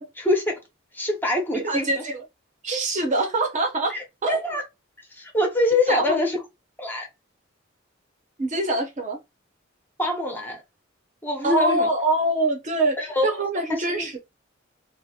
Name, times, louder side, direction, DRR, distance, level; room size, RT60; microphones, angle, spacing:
voice 1, 0.2-0.6 0.9-2.0 3.9-4.0 4.3-4.6 5.1-6.4 6.8-7.1 10.0-10.6 11.2-11.9 13.0-13.3 13.7-14.1, left 1 dB, 10° left, 0.5 m, -24 dB
voice 2, 1.5-2.2 2.6-4.0 4.2-4.4 5.9-6.2 8.4-9.2 11.4-14.2, right 2 dB, 40° right, 0.6 m, -24 dB
2.4 x 2.0 x 2.6 m
head